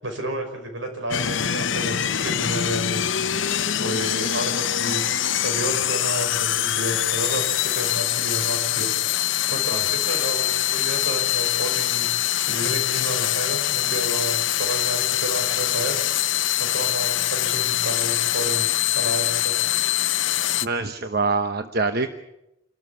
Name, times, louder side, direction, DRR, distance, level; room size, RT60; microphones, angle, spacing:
voice 1, 0.0-3.0 3.8-5.1 5.4-8.9 9.2-12.1 12.5-15.9 16.2-19.5, right 1 dB, 80° right, 4 dB, 5.9 m, -31 dB
sound 1, 1.1-20.7, left 12 dB, 70° left, 0.7 m, -24 dB
voice 2, 20.6-22.2, right 3 dB, 55° right, 7 dB, 1.0 m, -25 dB
27.0 x 13.0 x 9.6 m, 0.89 s
head